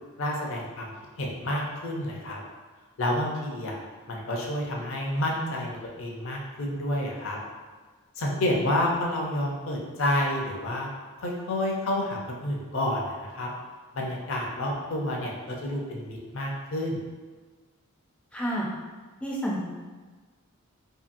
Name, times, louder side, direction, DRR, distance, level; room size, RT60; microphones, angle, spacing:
voice 1, 0.2-2.4 3.0-3.8 4.1-7.4 8.2-10.9 11.2-13.5 13.9-17.0, left 1 dB, 60° left, -1 dB, 0.5 m, -29 dB
voice 2, 18.3-18.7 19.2-19.6, equal, 5° left, -4 dB, 0.4 m, -29 dB
2.8 x 2.6 x 2.5 m, 1.4 s
head